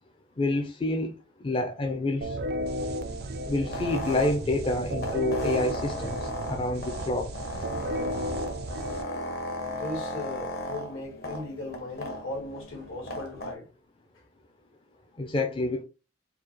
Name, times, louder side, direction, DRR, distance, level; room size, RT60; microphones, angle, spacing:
voice 1, 0.4-1.2 1.4-2.4 3.5-7.3 15.2-15.8, left 2 dB, 25° left, 0.4 m, -28 dB
sound 1, 2.2-9.9, equal, 50° right, 0.4 m, -34 dB
sound 2, 2.9-13.5, left 1 dB, 50° left, 0.9 m, -37 dB
voice 2, 9.6-13.7, left 2 dB, 75° left, 1.7 m, -37 dB
4.6 x 2.1 x 3.0 m
head